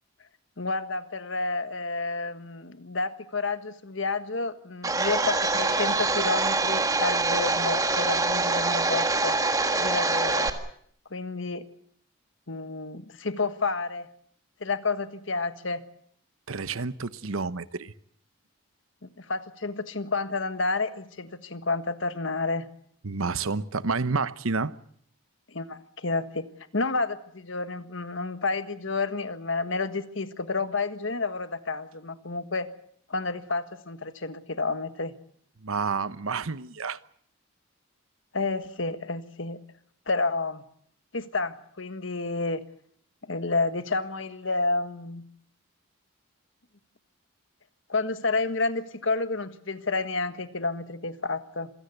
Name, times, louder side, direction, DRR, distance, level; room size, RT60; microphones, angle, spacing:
voice 1, 0.6-9.3 9.8-10.5 11.1-11.7 12.5-14.1 14.6-15.8 19.0-22.7 25.5-26.5 26.7-32.7 33.1-35.1 38.3-39.6 40.1-40.6 41.1-42.6 43.2-45.3 47.9-51.7, left 3 dB, 65° left, 11 dB, 1.5 m, -30 dB
Domestic sounds home sounds, 4.8-10.5, right 3 dB, 15° right, 1.7 m, -25 dB
voice 2, 16.5-17.9 23.0-24.7 35.6-37.0, right 4 dB, 80° right, 15 dB, 0.9 m, -29 dB
26.5 x 17.0 x 8.1 m, 0.65 s
head